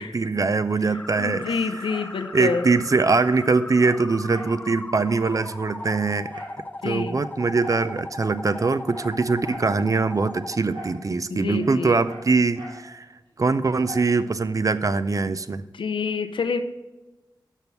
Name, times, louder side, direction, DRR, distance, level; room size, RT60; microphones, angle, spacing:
voice 1, 0.0-1.9 2.3-6.3 6.8-13.1 13.4-15.6, right 4 dB, 45° right, 13 dB, 0.4 m, -23 dB
sound 1, 0.9-10.6, left 2 dB, 20° left, 0.4 m, -38 dB
voice 2, 1.2-2.7 6.8-7.2 11.3-12.0 15.7-16.6, left 5 dB, 80° left, 8 dB, 0.6 m, -27 dB
Dog, 1.4-2.7 3.0-3.1 3.3-4.6 4.9-5.0 5.3-6.6 7.6-7.9 8.4-9.7 10.7-11.0 11.3-12.8 13.8-14.1 14.6-14.7, right 1 dB, 90° right, 2.8 m, -42 dB
6.1 x 5.3 x 6.9 m, 1.1 s
cardioid pair, 50°, 8 cm